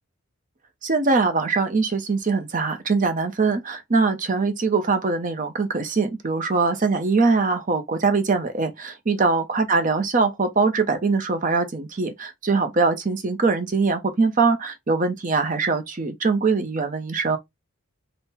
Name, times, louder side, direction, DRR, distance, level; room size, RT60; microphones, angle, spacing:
voice 1, 0.8-17.4, right 4 dB, 35° right, 0.6 m, -22 dB
3.7 x 2.1 x 4.1 m
head